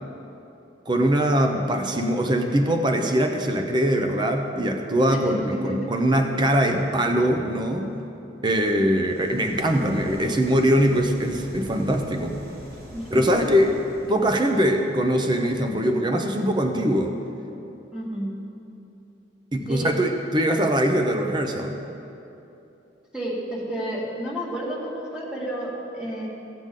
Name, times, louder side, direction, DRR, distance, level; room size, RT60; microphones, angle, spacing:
voice 1, 0.9-7.9 8.4-12.4 13.1-13.7 14.1-17.2 19.5-21.8, equal, 25° right, 4 dB, 0.6 m, -22 dB
voice 2, 5.1-5.9 12.9-13.4 17.9-18.3 19.7-19.9 23.1-26.3, right 1 dB, 5° right, -6 dB, 1.9 m, -31 dB
juice fridge, 8.8-14.4, equal, 50° right, 1.4 m, -43 dB
16.0 x 7.7 x 3.7 m, 2.9 s
head